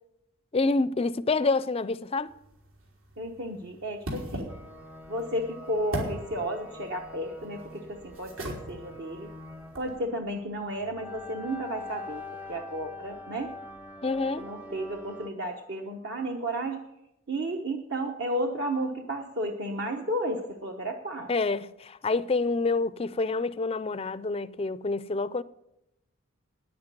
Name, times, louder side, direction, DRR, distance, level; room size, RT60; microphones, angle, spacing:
voice 1, 0.5-2.3 14.0-14.4 21.3-25.4, left 3 dB, 25° left, 0.4 m, -27 dB
sound 1, 2.3-10.0, equal, 70° right, 3.8 m, -41 dB
voice 2, 3.2-4.5 5.1-9.3 9.8-12.2 12.5-13.5 14.4-16.8 17.3-21.3, right 1 dB, 55° right, 1.0 m, -33 dB
sound 2, 4.5-15.3, left 2 dB, 5° right, 0.7 m, -44 dB
10.0 x 9.6 x 9.0 m
head